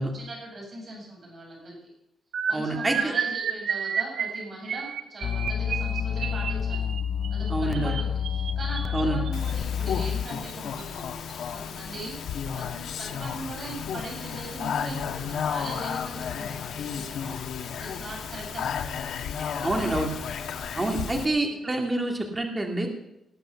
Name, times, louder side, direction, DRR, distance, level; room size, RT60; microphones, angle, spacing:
voice 1, 0.0-1.8 2.5-6.8 7.3-11.2 11.5-18.8 19.6-20.1 20.8-21.2, right 2 dB, 35° right, -1 dB, 6.8 m, -40 dB
sound 1, 2.3-9.5 10.3-10.5 10.8-11.0 11.3-11.5, right 7 dB, 70° right, 1.1 m, -32 dB
voice 2, 2.5-3.1 7.5-7.9 8.9-9.2 19.6-20.1 20.8-22.9, right 2 dB, 15° right, 2 dB, 2.2 m, -27 dB
sound 2, 5.2-10.3, left 8 dB, 40° left, 0.4 m, -29 dB
Speech, 9.3-21.3, left 7 dB, 80° left, 1.2 m, -33 dB
19.5 x 8.8 x 6.9 m, 0.85 s
wide cardioid pair, 175°, 0 cm